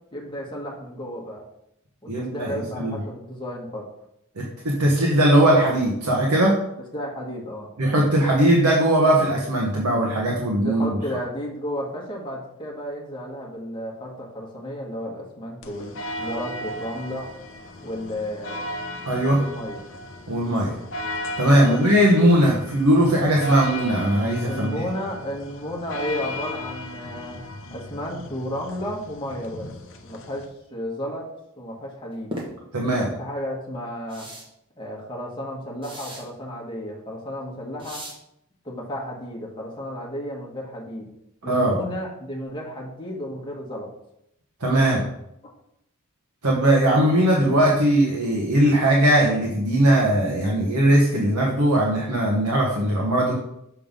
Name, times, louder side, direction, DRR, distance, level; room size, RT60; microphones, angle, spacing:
voice 1, 0.1-1.4 2.0-3.9 6.9-7.7 10.6-17.4 17.8-18.6 19.3-19.8 21.5-21.8 24.5-27.4 27.7-29.7 30.0-31.3 31.6-32.3 32.9-34.3 34.8-38.1 38.6-41.1 41.4-43.9, equal, 20° left, -3 dB, 1.4 m, -33 dB
voice 2, 2.1-3.0 4.4-6.6 7.8-10.8 19.1-19.4 20.3-20.7 21.4-24.8 32.7-33.1 41.4-41.7 44.6-45.1 46.4-53.4, right 1 dB, 90° right, -2 dB, 1.2 m, -19 dB
sound 1, 15.6-30.5, equal, 60° left, 0.8 m, -35 dB
sound 2, 32.3-32.5 34.1-34.4 35.8-36.3 37.8-38.2, equal, 25° right, 1.3 m, -36 dB
7.0 x 3.7 x 5.2 m, 0.80 s
head